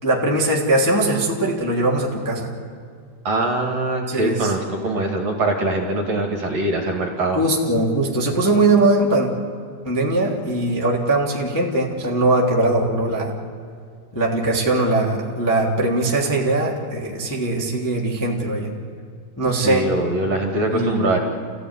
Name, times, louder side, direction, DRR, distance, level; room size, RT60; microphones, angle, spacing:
voice 1, 0.0-2.5 4.1-4.5 7.3-9.3 9.8-13.3 14.1-18.7 19.4-19.9 20.7-21.2, right 2 dB, 5° left, -3 dB, 2.1 m, -20 dB
voice 2, 3.2-7.4 19.6-21.2, right 2 dB, 45° right, 1 dB, 3.1 m, -22 dB
29.0 x 16.0 x 9.8 m, 2.2 s
omnidirectional pair, 4.7 m